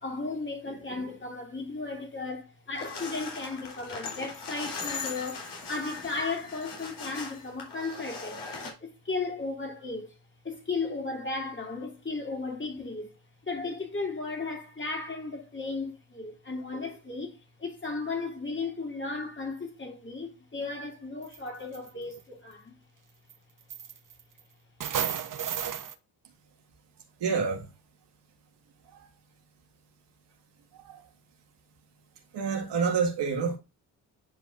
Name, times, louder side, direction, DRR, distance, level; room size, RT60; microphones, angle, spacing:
voice 1, 0.0-8.4 8.8-10.1 10.4-13.1 13.4-22.8, left 3 dB, 25° left, 3.0 m, -35 dB
sound 1, 2.7-8.7, left 4 dB, 70° left, 3.9 m, -39 dB
sound 2, 21.2-21.4 21.7-22.2 23.3-23.4 23.7-24.4 24.8-25.9, right 8 dB, 45° right, 1.0 m, -32 dB
voice 2, 27.2-27.7 28.9-29.1 30.7-31.1 32.3-33.6, right 5 dB, 70° right, 2.0 m, -28 dB
10.0 x 4.9 x 2.6 m
supercardioid pair, 55°, 43 cm